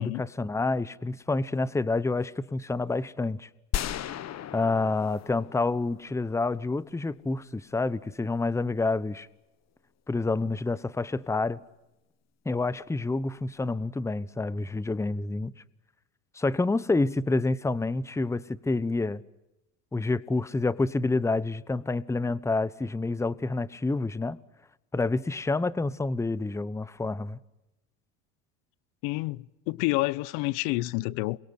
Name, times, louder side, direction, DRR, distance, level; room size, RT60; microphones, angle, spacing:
voice 1, 0.0-3.5 4.5-9.3 10.1-11.6 12.4-15.5 16.3-19.2 19.9-24.4 24.9-27.4, left 3 dB, 5° left, 0.9 m, -28 dB
sound 1, 3.7-6.6, left 11 dB, 40° left, 1.4 m, -35 dB
voice 2, 29.0-31.4, left 21 dB, 70° left, 1.0 m, -29 dB
28.5 x 22.5 x 8.1 m
supercardioid pair, 100°, 39 cm